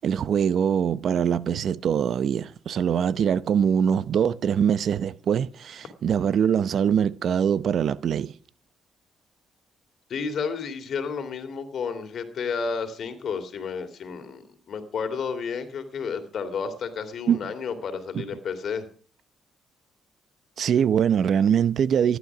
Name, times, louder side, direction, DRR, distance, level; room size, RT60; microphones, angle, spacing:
voice 1, 0.0-8.3 17.3-17.5 18.1-18.2 20.6-22.2, right 8 dB, 60° right, 0.7 m, -23 dB
voice 2, 10.1-18.9, left 5 dB, 60° left, 2.9 m, -31 dB
15.0 x 11.0 x 6.1 m
cardioid pair, 90°, 0 cm